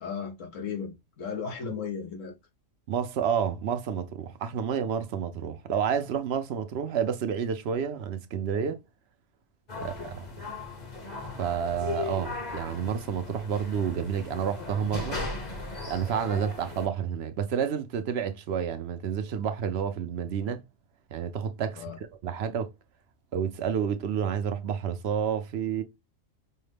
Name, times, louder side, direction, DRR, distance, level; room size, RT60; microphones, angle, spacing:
voice 1, 0.0-2.3 9.7-10.1 21.8-22.0, left 7 dB, 80° left, 1.2 m, -36 dB
voice 2, 2.9-8.8 9.8-10.2 11.4-15.2 15.9-20.6 21.1-22.7 23.3-25.8, right 7 dB, 65° right, 0.8 m, -30 dB
sound 1, 9.7-16.9, left 3 dB, 35° left, 1.0 m, -37 dB
5.5 x 2.1 x 3.2 m
omnidirectional pair, 1.3 m